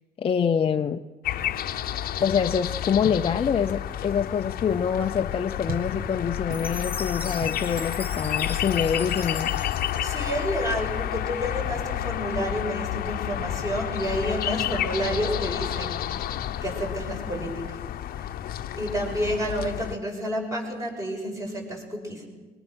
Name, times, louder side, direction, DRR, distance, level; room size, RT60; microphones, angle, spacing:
voice 1, 0.2-1.0 2.2-9.5, left 7 dB, 35° left, 0.6 m, -25 dB
sound 1, 1.2-20.0, left 11 dB, 60° left, 0.9 m, -30 dB
sound 2, 1.4-12.3, right 1 dB, 60° right, 4.3 m, -44 dB
Chime, 6.5-10.9, left 3 dB, 10° left, 2.3 m, -40 dB
voice 2, 10.0-16.0 16.6-17.8 18.2-18.3 18.8-22.2, equal, 20° right, 6.2 m, -30 dB
23.0 x 21.5 x 6.3 m
cardioid pair, 110°, 17 cm